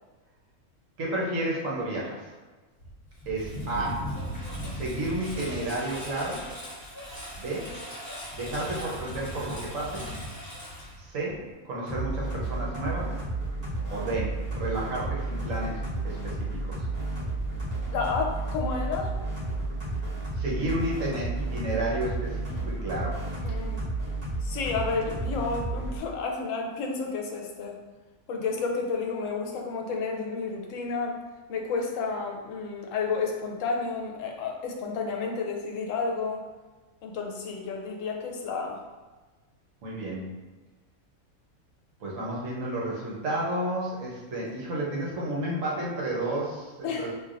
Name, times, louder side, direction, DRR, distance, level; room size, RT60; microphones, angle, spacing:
voice 1, 1.0-2.3 3.3-4.1 4.7-6.4 7.4-7.7 8.3-10.1 11.0-13.2 13.9-15.8 16.0-16.7 20.4-23.2 39.8-40.3 42.0-47.1, right 1 dB, 65° right, -4 dB, 1.2 m, -31 dB
Engine, 2.8-11.5, equal, 15° left, 1.0 m, -38 dB
sound 1, 11.9-26.0, right 2 dB, 30° right, 1.2 m, -32 dB
voice 2, 17.9-19.1 23.4-23.9 24.4-27.8 28.3-31.2 31.5-36.4 37.0-38.8 44.4-44.5 46.8-47.1, left 4 dB, 70° left, 1 dB, 0.9 m, -31 dB
4.4 x 2.7 x 2.5 m, 1.3 s
omnidirectional pair, 1.5 m